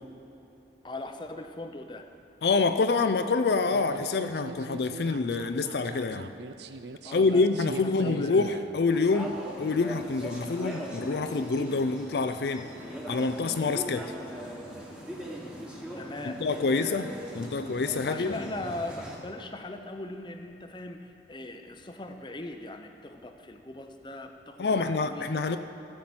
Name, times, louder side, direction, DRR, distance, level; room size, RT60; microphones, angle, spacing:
voice 1, 0.8-2.1 7.0-8.5 15.9-17.0 18.1-25.6, left 2 dB, 25° left, 6 dB, 0.6 m, -40 dB
voice 2, 2.4-6.3 7.1-12.7 13.1-14.1 16.2-17.1 17.4-18.4 24.6-25.6, left 4 dB, 70° left, 9 dB, 0.4 m, -26 dB
sound 1, 3.7-8.8, right 3 dB, 75° right, 0.5 m, -41 dB
sound 2, 8.9-19.2, equal, 5° right, 1.3 m, -40 dB
14.5 x 5.8 x 7.7 m, 2.9 s
head